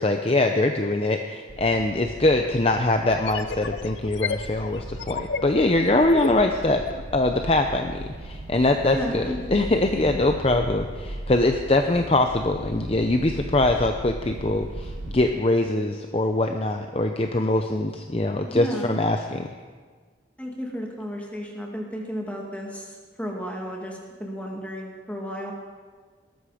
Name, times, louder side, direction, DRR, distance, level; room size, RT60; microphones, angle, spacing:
voice 1, 0.0-6.8 7.1-19.5, left 2 dB, 30° left, 5 dB, 0.6 m, -23 dB
sound 1, 1.5-15.2, right 1 dB, 85° right, 1.1 m, -38 dB
sound 2, 1.6-1.7 3.1-7.0, left 5 dB, 85° left, 0.7 m, -33 dB
voice 2, 8.8-9.7 18.5-19.0 20.4-25.5, equal, 10° left, -1 dB, 2.2 m, -33 dB
18.5 x 13.5 x 5.0 m, 1.5 s
head